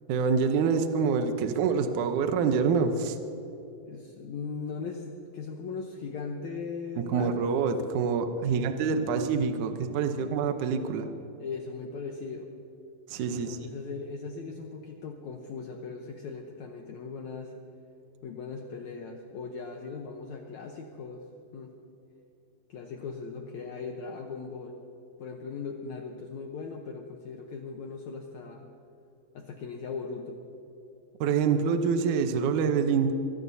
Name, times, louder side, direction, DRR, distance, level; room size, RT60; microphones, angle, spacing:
voice 1, 0.1-3.2 7.0-11.1 13.1-13.6 31.2-33.1, right 5 dB, 75° right, 7 dB, 1.8 m, -26 dB
voice 2, 3.8-7.4 8.4-8.8 10.2-10.3 11.4-12.5 13.3-17.5 18.2-21.3 21.5-21.7 22.7-24.8 25.2-28.7 29.3-30.4, left 5 dB, 80° left, 2 dB, 1.6 m, -39 dB
24.0 x 18.0 x 2.7 m, 3.0 s
omnidirectional pair, 4.6 m